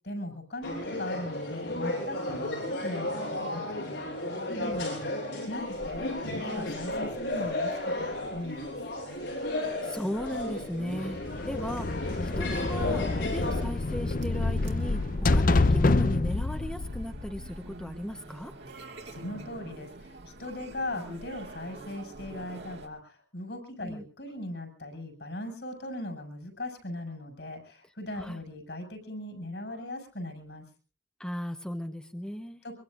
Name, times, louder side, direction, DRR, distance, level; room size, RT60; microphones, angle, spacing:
voice 1, 0.0-4.0 4.4-8.8 19.0-30.6 32.6-32.8, left 1 dB, 70° left, 5 dB, 6.4 m, -39 dB
sound 1, 0.6-13.6, left 1 dB, 90° left, 7.8 m, -34 dB
sound 2, 5.5-22.9, right 2 dB, 65° right, 2.6 m, -48 dB
voice 2, 9.8-18.5 23.8-24.0 28.2-28.4 31.2-32.6, equal, 5° left, 6 dB, 1.0 m, -37 dB
sound 3, 11.1-17.9, left 2 dB, 50° left, 0.7 m, -27 dB
24.0 x 23.5 x 2.5 m, 0.37 s
head